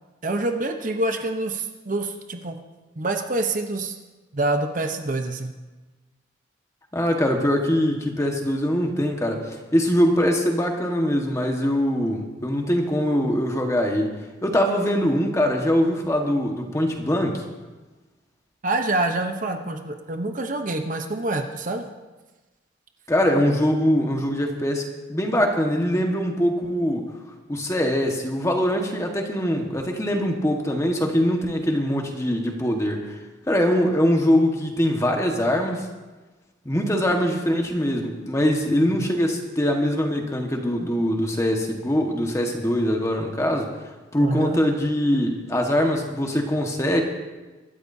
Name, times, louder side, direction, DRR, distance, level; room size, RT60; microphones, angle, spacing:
voice 1, 0.2-2.5 3.0-3.9 4.3-5.5 18.6-21.9 38.7-39.1 44.2-44.6, right 2 dB, 40° right, 5 dB, 0.8 m, -26 dB
voice 2, 6.9-14.1 14.4-17.4 23.1-27.1 27.5-33.1 33.5-35.9 36.6-43.7 44.1-47.0, equal, 15° left, 2 dB, 1.4 m, -22 dB
24.0 x 13.0 x 2.7 m, 1.2 s
head